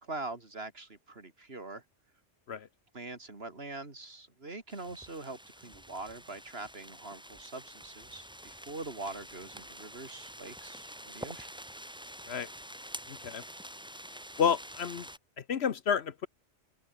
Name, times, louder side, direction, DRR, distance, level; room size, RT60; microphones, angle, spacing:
voice 1, 0.0-1.8 2.9-11.5, right 3 dB, 55° right, 3.2 m, -43 dB
sound 1, 4.7-15.2, equal, 5° right, 1.9 m, -47 dB
voice 2, 13.1-13.4 14.4-15.1 15.4-16.3, left 7 dB, 60° left, 1.1 m, -30 dB
open air
omnidirectional pair, 1.3 m